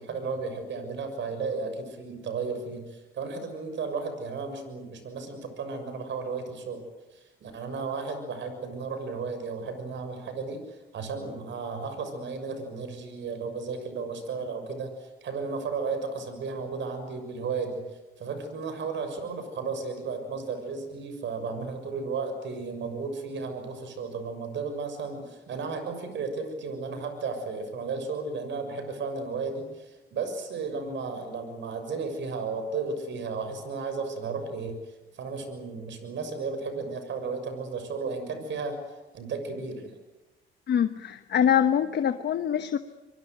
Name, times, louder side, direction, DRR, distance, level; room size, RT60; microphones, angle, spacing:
voice 1, 0.0-6.8 7.1-38.8 39.1-39.9, right 4 dB, 70° right, 8 dB, 6.5 m, -34 dB
voice 2, 40.7-42.8, left 9 dB, 60° left, 9 dB, 1.2 m, -24 dB
26.0 x 23.0 x 8.1 m, 1.1 s
cardioid pair, 90°, 20 cm